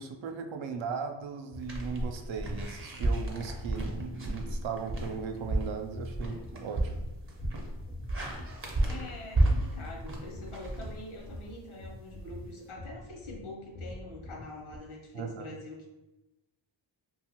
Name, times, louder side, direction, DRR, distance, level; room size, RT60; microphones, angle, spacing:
voice 1, 0.0-6.9 15.1-15.5, right 5 dB, 75° right, 5 dB, 0.5 m, -37 dB
sound 1, 1.2-14.8, left 1 dB, 20° left, 0.3 m, -46 dB
sound 2, 1.6-11.5, right 1 dB, 25° right, 0.6 m, -32 dB
voice 2, 8.8-15.9, left 2 dB, 85° left, 0 dB, 0.8 m, -44 dB
2.6 x 2.4 x 2.8 m, 0.96 s
cardioid pair, 80°, 47 cm